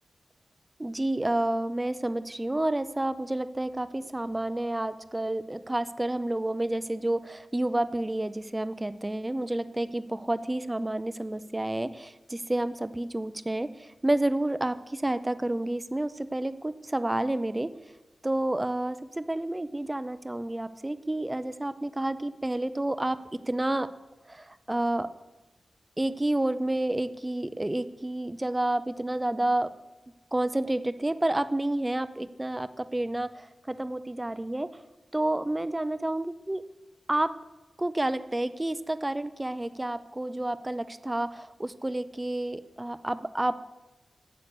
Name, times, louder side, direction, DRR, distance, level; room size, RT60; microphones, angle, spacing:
voice 1, 0.8-17.7 18.2-23.9 24.3-25.1 26.0-29.7 30.3-34.7 35.1-36.6 37.1-37.3 37.8-43.5, right 1 dB, 15° right, 13 dB, 0.5 m, -30 dB
10.5 x 8.1 x 8.1 m, 1.1 s
wide cardioid pair, 150°, 0 cm